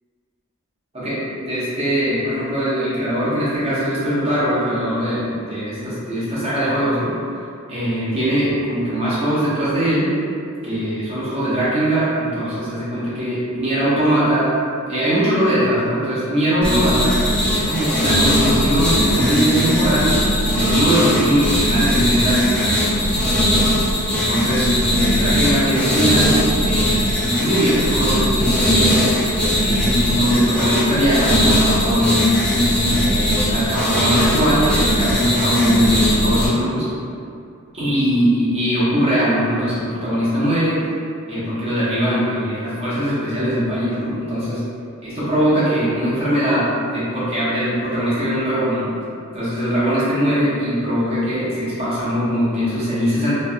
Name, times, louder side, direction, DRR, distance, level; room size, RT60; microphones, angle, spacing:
voice 1, 0.9-7.1 7.7-10.1 10.6-14.5 14.9-17.1 17.5-20.1 20.4-23.1 24.1-29.1 29.6-32.3 32.8-36.9 37.7-40.8 41.3-44.6 45.0-48.9 49.3-53.3, equal, 30° right, -11 dB, 0.9 m, -21 dB
sound 1, 16.6-36.5, equal, 5° left, 0.4 m, -19 dB
3.1 x 2.2 x 2.6 m, 2.5 s
head